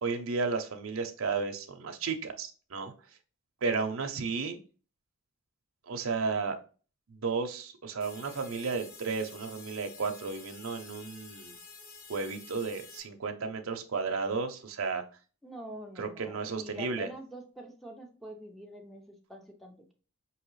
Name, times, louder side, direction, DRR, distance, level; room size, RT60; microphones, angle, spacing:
voice 1, 0.0-2.9 3.6-4.6 5.9-6.6 7.1-11.6 12.1-15.0 16.0-17.1, right 4 dB, 75° right, 5 dB, 0.6 m, -33 dB
sound 1, 8.0-13.0, left 4 dB, 85° left, 1.1 m, -50 dB
voice 2, 15.4-19.9, right 1 dB, ahead, 2 dB, 0.7 m, -46 dB
4.7 x 2.9 x 3.1 m, 0.37 s
head